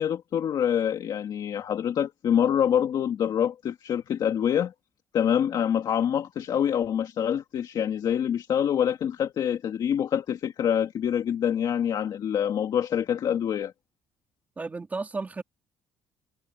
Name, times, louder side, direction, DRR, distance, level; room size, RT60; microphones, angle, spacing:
voice 1, 0.0-4.7 5.1-13.7, left 9 dB, 40° left, 2.0 m, -26 dB
voice 2, 14.6-15.4, right 3 dB, 15° right, 2.8 m, -33 dB
cardioid pair, 180°, 10 cm